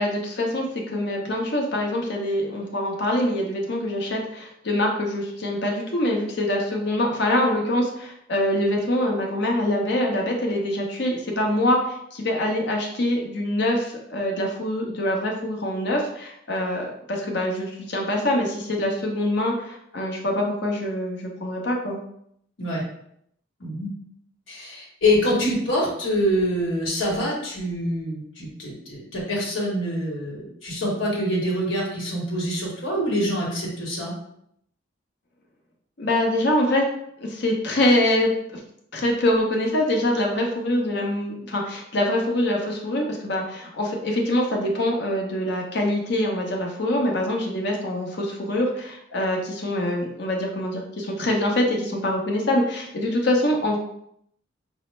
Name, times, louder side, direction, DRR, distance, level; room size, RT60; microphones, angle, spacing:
voice 1, 0.0-22.0 36.0-36.9 37.2-38.6 38.9-53.8, left 1 dB, 60° left, 0 dB, 0.8 m, -24 dB
voice 2, 24.5-34.1, equal, 80° left, -4 dB, 1.1 m, -25 dB
5.4 x 2.0 x 3.1 m, 0.73 s
head